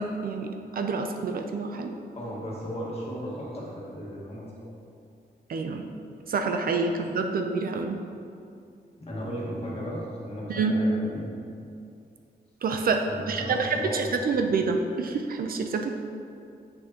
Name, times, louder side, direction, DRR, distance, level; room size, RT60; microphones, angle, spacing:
voice 1, 0.0-1.9 5.5-5.8 6.3-8.0 10.5-10.8 12.6-15.9, right 4 dB, 60° right, 5 dB, 0.4 m, -27 dB
voice 2, 2.1-4.4 6.9-7.0 9.0-11.2 13.0-14.0, equal, 35° left, -5 dB, 1.5 m, -35 dB
7.7 x 6.4 x 2.8 m, 2.5 s
wide cardioid pair, 165°, 17 cm